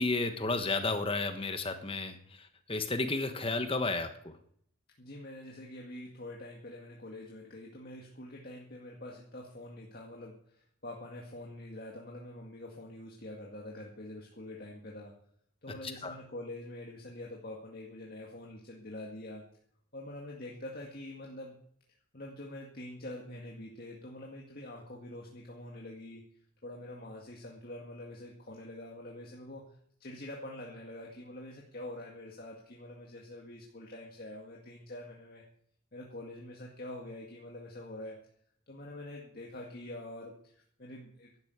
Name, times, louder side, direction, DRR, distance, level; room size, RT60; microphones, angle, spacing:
voice 1, 0.0-2.2 2.7-4.1 16.0-16.1, left 3 dB, 25° left, 8 dB, 1.2 m, -31 dB
voice 2, 5.0-15.1 15.6-19.4 19.9-21.5 22.1-26.2 26.6-29.6 30.0-35.4 35.9-38.2 38.7-41.4, left 1 dB, 45° left, -1 dB, 2.0 m, -45 dB
12.0 x 10.5 x 8.2 m, 0.67 s
head